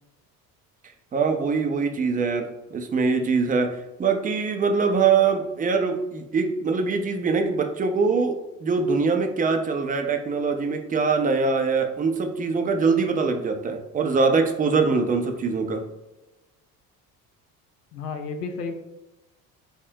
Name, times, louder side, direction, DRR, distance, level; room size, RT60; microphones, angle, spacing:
voice 1, 1.1-15.8, right 4 dB, 20° right, 5 dB, 0.5 m, -23 dB
voice 2, 17.9-18.7, left 4 dB, 90° left, 6 dB, 0.6 m, -32 dB
5.6 x 2.1 x 2.7 m, 1.0 s
hypercardioid pair, 65°, 46 cm